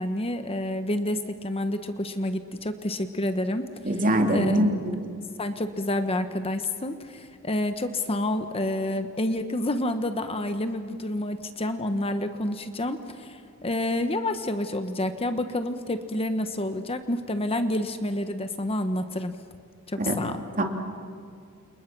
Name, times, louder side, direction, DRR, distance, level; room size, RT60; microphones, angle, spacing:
voice 1, 0.0-3.7 4.3-4.6 5.4-19.3 19.9-20.4, left 1 dB, 25° left, 8 dB, 1.1 m, -29 dB
voice 2, 3.8-4.9 20.0-20.1 20.6-20.7, right 1 dB, 40° right, 3 dB, 3.0 m, -23 dB
29.5 x 28.5 x 6.1 m, 2.4 s
head